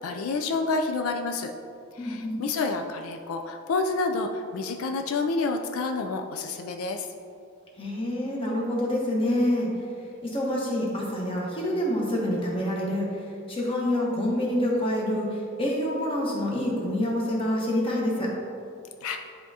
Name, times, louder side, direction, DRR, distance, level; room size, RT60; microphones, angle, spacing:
voice 1, 0.0-1.5 2.0-7.1 19.0-19.2, left 3 dB, 85° left, 5 dB, 0.4 m, -29 dB
voice 2, 2.0-2.4 7.8-9.7 10.2-13.1 13.5-18.3, left 1 dB, 25° left, -3 dB, 1.1 m, -27 dB
10.0 x 3.5 x 2.7 m, 2.6 s
head